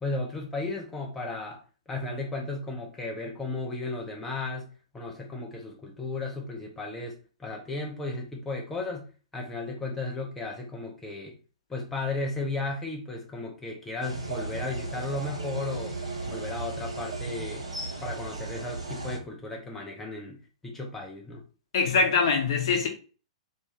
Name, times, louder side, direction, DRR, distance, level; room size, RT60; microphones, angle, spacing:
voice 1, 0.0-1.6 1.9-11.4 11.7-16.0 16.3-17.7 18.0-20.4 20.6-21.4, left 3 dB, 10° left, 0.6 m, -35 dB
sound 1, 14.0-19.2, right 3 dB, 75° right, 1.0 m, -35 dB
voice 2, 21.7-22.9, left 4 dB, 55° left, 0.9 m, -23 dB
2.7 x 2.6 x 3.3 m
figure-of-eight pair, 110°, 3 cm